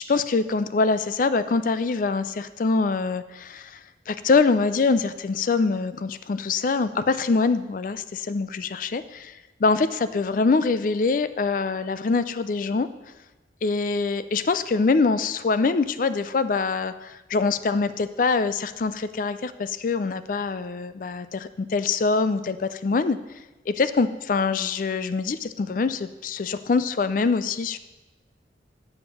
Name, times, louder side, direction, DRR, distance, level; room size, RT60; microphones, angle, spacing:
voice 1, 0.1-3.8 4.1-9.3 9.6-12.9 13.6-23.2 23.7-27.8, left 4 dB, 45° left, 13 dB, 0.4 m, -24 dB
7.1 x 5.2 x 6.8 m, 1.1 s
head